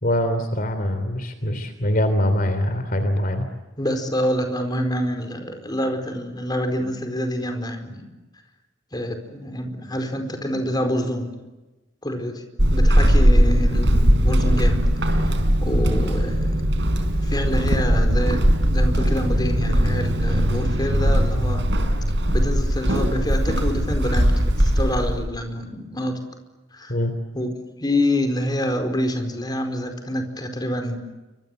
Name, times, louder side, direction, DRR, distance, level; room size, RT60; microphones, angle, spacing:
voice 1, 0.0-3.5 26.9-27.1, left 1 dB, 45° left, 8 dB, 3.1 m, -23 dB
voice 2, 3.8-8.1 8.9-11.4 12.0-12.4 12.7-15.3 15.6-16.6 17.2-18.4 18.7-21.6 22.3-26.1 26.7-27.0 27.3-27.5 27.8-31.0, left 1 dB, 20° left, 6 dB, 4.6 m, -26 dB
Walk footsteps / Squeak, 12.6-25.2, equal, 65° right, 4.4 m, -19 dB
29.5 x 25.5 x 8.0 m, 1.1 s
head